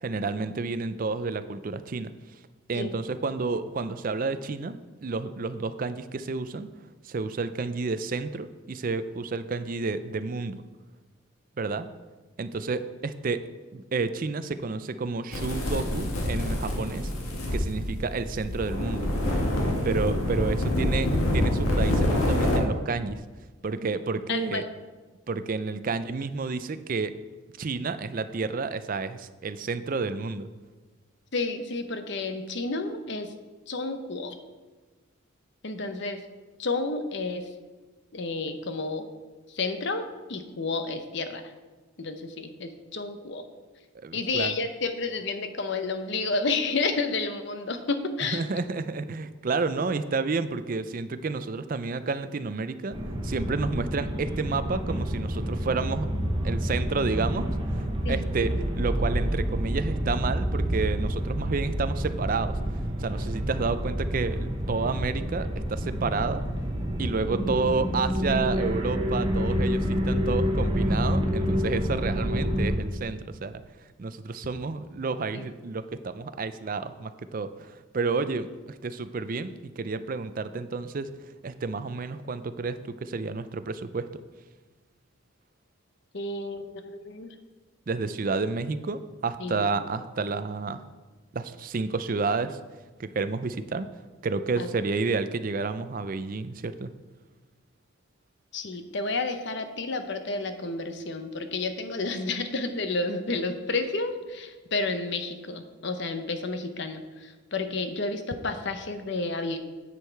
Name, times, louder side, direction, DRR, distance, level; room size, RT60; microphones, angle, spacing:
voice 1, 0.0-2.1 2.7-6.7 7.0-10.6 11.6-11.9 12.4-13.4 13.7-17.1 17.5-19.1 19.8-23.2 23.6-24.6 25.3-27.1 27.6-30.5 43.9-44.5 48.3-53.0 53.2-56.1 56.4-57.5 57.7-62.5 63.0-66.4 67.0-73.6 74.0-84.1 87.9-90.8 91.3-92.6 93.0-93.9 94.2-96.9, right 4 dB, 40° right, 11 dB, 0.4 m, -30 dB
sound 1, 15.3-22.6, left 1 dB, 90° left, 1.7 m, -26 dB
voice 2, 24.3-24.6 31.3-33.3 33.7-34.4 35.6-36.2 36.6-37.5 38.1-39.1 39.5-41.4 42.0-43.4 44.1-48.4 58.0-58.2 75.3-75.5 86.1-87.3 89.4-89.7 94.6-94.7 98.5-109.6, left 3 dB, 55° left, 8 dB, 0.8 m, -31 dB
sound 2, 52.9-72.8, equal, 25° right, 1.0 m, -28 dB
9.9 x 6.4 x 4.6 m, 1.3 s
head